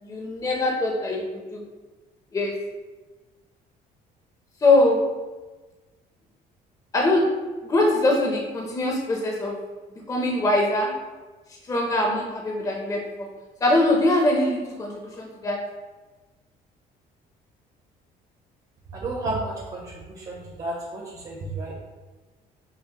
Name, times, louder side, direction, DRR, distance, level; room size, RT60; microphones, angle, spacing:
voice 1, 0.0-1.6 2.3-2.5 4.6-5.0 6.9-7.2 7.6-9.6 10.1-10.9 11.7-13.3 13.6-15.6, left 2 dB, 20° left, -1 dB, 0.6 m, -22 dB
voice 2, 19.0-19.5 20.6-20.7 21.3-21.7, right 2 dB, 40° right, -3 dB, 0.8 m, -29 dB
5.8 x 2.1 x 2.9 m, 1.2 s
cardioid pair, 110°, 17 cm